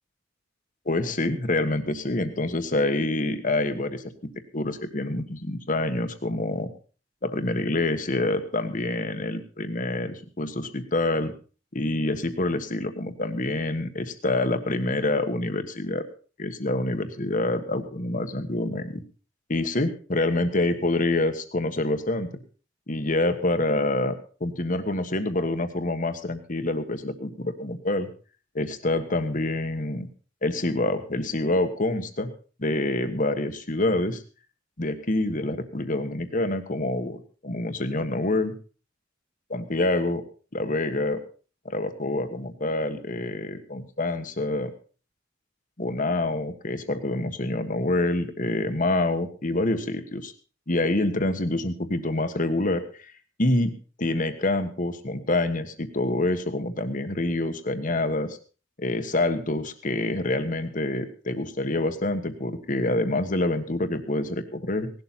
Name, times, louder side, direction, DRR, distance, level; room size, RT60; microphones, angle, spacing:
voice 1, 0.8-6.7 7.2-11.3 11.7-16.0 16.4-19.0 19.5-22.3 22.9-28.1 28.5-30.1 30.4-32.3 32.6-34.2 34.8-38.5 39.5-40.2 40.5-41.2 41.6-44.7 45.8-50.3 50.7-53.1 53.4-53.7 54.0-58.4 58.8-64.9, left 2 dB, 40° left, 9 dB, 1.4 m, -26 dB
18.0 x 12.0 x 4.2 m, 0.38 s
head